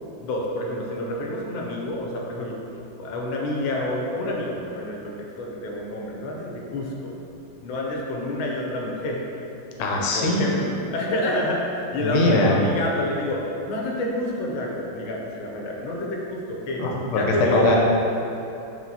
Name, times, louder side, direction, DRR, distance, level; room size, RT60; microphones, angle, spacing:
voice 1, 0.2-2.6 3.0-7.2 7.6-9.2 10.1-16.9 17.1-17.7, left 1 dB, 90° left, -1 dB, 1.4 m, -28 dB
voice 2, 9.8-10.5 12.0-12.6 16.8-17.2 17.5-17.8, left 2 dB, 70° left, -2 dB, 1.0 m, -21 dB
4.9 x 2.9 x 2.6 m, 2.9 s
omnidirectional pair, 2.2 m